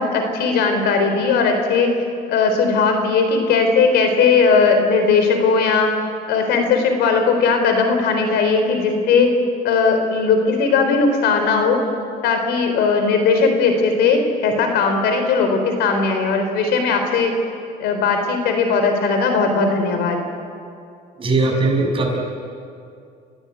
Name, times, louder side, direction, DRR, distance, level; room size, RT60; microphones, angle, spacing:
voice 1, 0.0-1.9 2.3-5.9 6.3-9.3 9.6-11.8 12.2-17.3 17.8-20.2, left 4 dB, 85° left, 5 dB, 4.2 m, -18 dB
voice 2, 21.2-22.2, right 2 dB, 30° right, 0 dB, 6.6 m, -19 dB
29.5 x 16.5 x 8.4 m, 2.4 s
cardioid pair, 110°, 17 cm